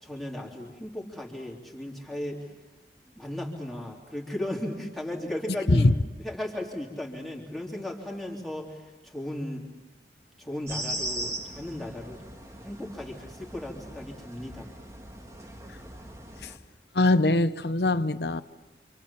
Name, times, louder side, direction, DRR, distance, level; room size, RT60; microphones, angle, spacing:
voice 1, 0.0-2.4 3.2-5.9 6.2-8.8 9.0-9.6 10.4-12.2 12.6-14.7, left 1 dB, ahead, 3.6 m, -36 dB
sound 1, 10.7-16.6, right 1 dB, 20° right, 2.1 m, -39 dB
voice 2, 16.9-18.4, left 2 dB, 70° left, 0.9 m, -22 dB
28.0 x 27.0 x 7.4 m
head